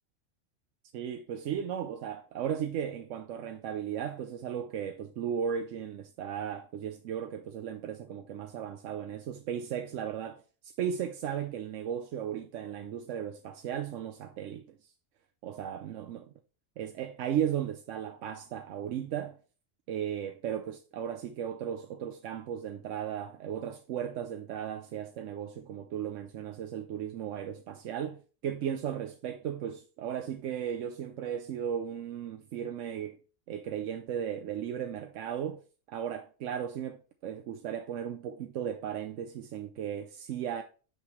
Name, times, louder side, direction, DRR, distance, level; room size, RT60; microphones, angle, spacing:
voice 1, 0.9-14.9 15.4-16.2 16.8-19.4 19.9-33.2 33.5-35.6 35.9-40.6, right 9 dB, 90° right, 1.0 m, -36 dB
5.9 x 5.8 x 3.0 m
omnidirectional pair, 1.2 m